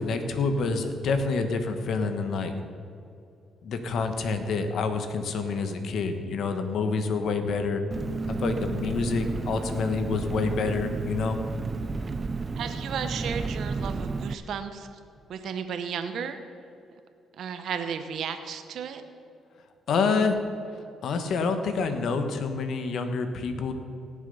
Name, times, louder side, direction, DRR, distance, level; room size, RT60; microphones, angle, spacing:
voice 1, 0.0-2.5 3.6-7.8 8.4-11.4 19.9-20.3 21.0-23.7, left 4 dB, 70° left, 7 dB, 1.4 m, -27 dB
Engine, 7.9-14.3, right 4 dB, 30° right, 0.5 m, -32 dB
voice 2, 12.5-14.9 15.3-16.4 17.4-19.0, right 7 dB, 70° right, 8 dB, 0.9 m, -34 dB
18.0 x 7.4 x 5.5 m, 2.6 s
cardioid pair, 90°, 0 cm